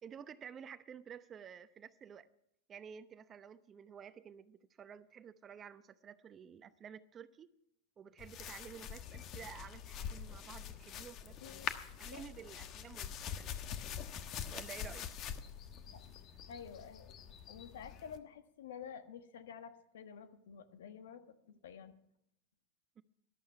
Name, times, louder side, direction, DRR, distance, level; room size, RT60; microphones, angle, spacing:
voice 1, 0.0-2.3 2.7-7.5 8.0-11.7 12.0-13.6 14.5-15.1 23.0-23.1, right 8 dB, 25° right, 0.7 m, -52 dB
sound 1, 8.2-18.2, left 8 dB, 40° left, 1.2 m, -45 dB
voice 2, 16.5-17.2 17.5-21.9, left 7 dB, 85° left, 1.3 m, -50 dB
13.5 x 12.0 x 5.7 m
supercardioid pair, 125°, 0 cm